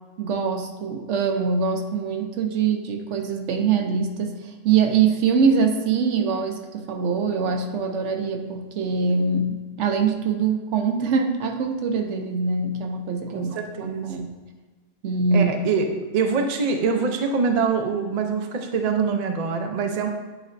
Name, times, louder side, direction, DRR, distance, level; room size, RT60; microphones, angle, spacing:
voice 1, 0.2-14.3 15.0-15.5, right 5 dB, 70° right, 5 dB, 0.9 m, -23 dB
voice 2, 13.3-14.1 15.3-15.9 16.1-20.1, right 5 dB, 50° right, 4 dB, 0.4 m, -24 dB
9.1 x 4.1 x 2.5 m, 1.3 s
omnidirectional pair, 1.3 m